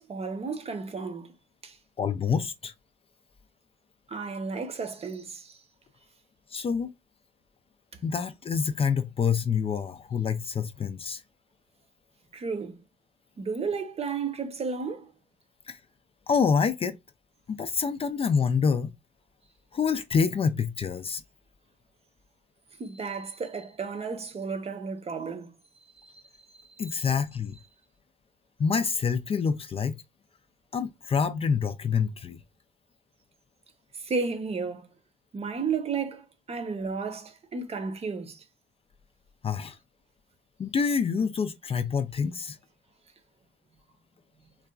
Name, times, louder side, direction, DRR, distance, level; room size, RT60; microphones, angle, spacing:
voice 1, 0.0-1.3 1.6-1.8 4.1-5.6 12.3-12.8 13.4-15.1 22.8-25.5 25.9-26.9 33.9-34.9 35.3-38.4, right 5 dB, 40° right, 0.8 m, -33 dB
voice 2, 2.0-2.7 6.5-6.9 8.0-11.2 15.7-15.8 16.3-17.0 17.5-18.9 19.7-21.2 26.8-27.6 28.6-30.0 30.7-32.4 39.4-39.8 40.6-42.6, left 6 dB, 35° left, 0.4 m, -27 dB
3.9 x 2.4 x 2.2 m
cardioid pair, 115°, 16 cm